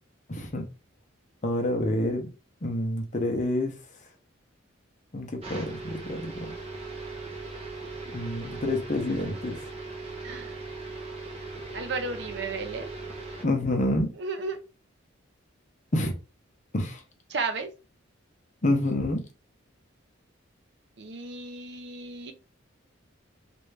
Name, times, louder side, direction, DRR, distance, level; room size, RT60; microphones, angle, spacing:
voice 1, 0.3-0.7 1.4-2.3 2.6-3.7 5.1-6.5 8.1-9.6 13.4-14.1 15.9-16.1 16.7-17.0 18.6-19.2, left 1 dB, 35° left, 0.6 m, -28 dB
sound 1, 5.4-13.4, right 3 dB, 30° right, 0.8 m, -39 dB
voice 2, 10.2-10.6 11.7-12.9 14.1-14.6 17.3-17.7 21.0-22.3, right 4 dB, 55° right, 0.6 m, -34 dB
3.2 x 2.5 x 3.2 m
head